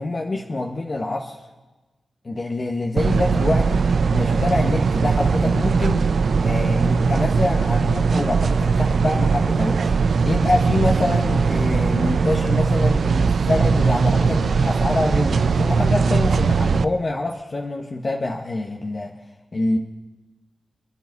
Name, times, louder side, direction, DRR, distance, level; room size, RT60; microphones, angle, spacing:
voice 1, 0.0-1.4 2.2-6.0 6.4-19.2 19.5-19.8, left 2 dB, 45° left, 0 dB, 1.4 m, -25 dB
sound 1, 3.0-16.8, right 5 dB, 75° right, 0.5 m, -20 dB
27.5 x 10.5 x 4.2 m, 1.2 s
cardioid pair, 55°, 0 cm